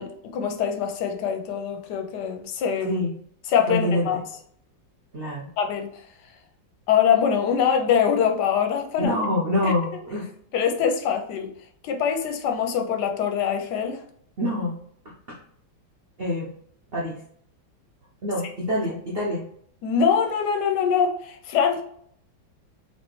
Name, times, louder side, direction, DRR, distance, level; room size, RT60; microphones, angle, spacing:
voice 1, 0.0-3.0 3.5-4.2 5.6-5.9 6.9-9.1 9.6-9.7 10.5-11.5 11.8-14.0 19.8-21.8, left 7 dB, 70° left, 1.1 m, -23 dB
voice 2, 3.7-4.2 5.1-5.5 9.0-10.3 14.4-14.8 15.3-15.4 16.2-16.5 16.9-17.2 18.2-19.5, left 1 dB, 70° right, 0.5 m, -26 dB
4.2 x 2.7 x 3.1 m
omnidirectional pair, 2.1 m